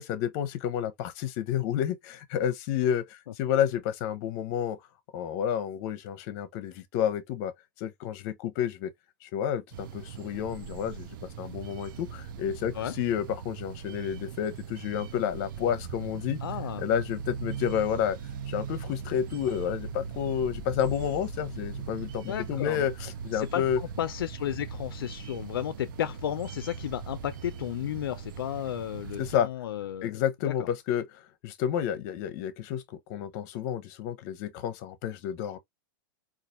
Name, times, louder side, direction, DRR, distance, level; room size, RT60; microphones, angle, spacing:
voice 1, 0.0-4.8 5.1-8.9 9.2-16.4 16.8-18.2 18.5-23.8 29.2-29.5 30.0-35.6, left 9 dB, 50° left, 0.7 m, -30 dB
sound 1, 9.7-29.4, right 7 dB, 65° right, 0.6 m, -40 dB
voice 2, 16.4-16.8 22.3-22.9 23.3-30.2 30.6-30.7, left 11 dB, 85° left, 0.4 m, -33 dB
4.0 x 2.4 x 2.5 m
hypercardioid pair, 130°, 12 cm